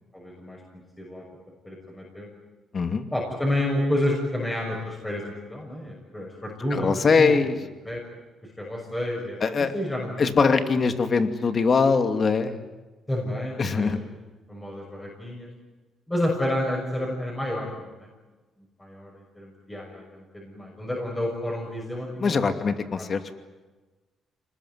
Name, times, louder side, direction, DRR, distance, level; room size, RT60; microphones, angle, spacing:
voice 1, 0.1-0.6 1.0-1.2 1.6-2.3 3.1-6.9 7.2-7.5 7.8-8.0 8.6-9.4 9.7-10.2 13.1-14.0 14.5-15.5 16.1-18.1 18.8-22.6 23.0-23.1, left 1 dB, 10° left, -2 dB, 6.5 m, -30 dB
voice 2, 2.7-3.1 6.7-7.5 9.4-9.7 10.2-12.6 13.6-14.0 22.2-23.3, left 5 dB, 45° left, 8 dB, 2.5 m, -22 dB
27.0 x 20.5 x 9.6 m, 1.2 s
cardioid pair, 90°, 0 cm